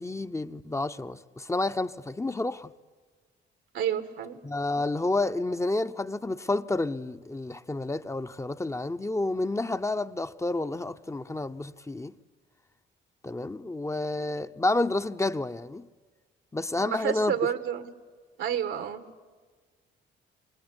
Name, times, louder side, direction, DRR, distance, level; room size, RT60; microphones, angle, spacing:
voice 1, 0.0-2.7 4.4-12.1 13.2-15.9 16.5-17.3, left 2 dB, 15° left, 0.8 m, -30 dB
voice 2, 3.7-4.4 16.8-17.9 18.4-19.0, right 9 dB, 80° right, 1.7 m, -30 dB
26.5 x 21.0 x 9.8 m
cardioid pair, 90°, 20 cm